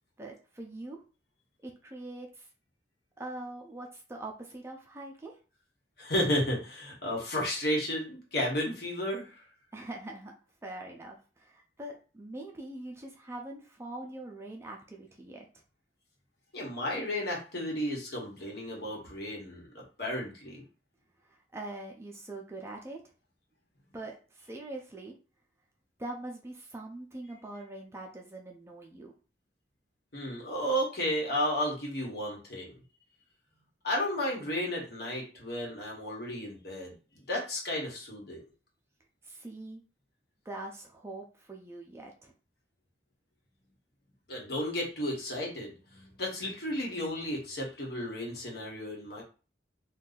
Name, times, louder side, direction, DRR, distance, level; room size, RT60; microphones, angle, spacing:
voice 1, 0.2-1.0 1.6-2.5 3.2-5.4 9.7-10.3 10.6-15.4 21.2-23.1 23.9-25.1 26.0-29.1 39.2-39.8 40.4-42.3, right 2 dB, 15° right, 0 dB, 0.4 m, -43 dB
voice 2, 6.0-9.4 16.5-20.6 30.1-32.8 33.8-36.9 37.3-38.4 44.3-49.2, equal, 60° left, -2 dB, 1.2 m, -33 dB
2.6 x 2.3 x 3.8 m, 0.35 s
head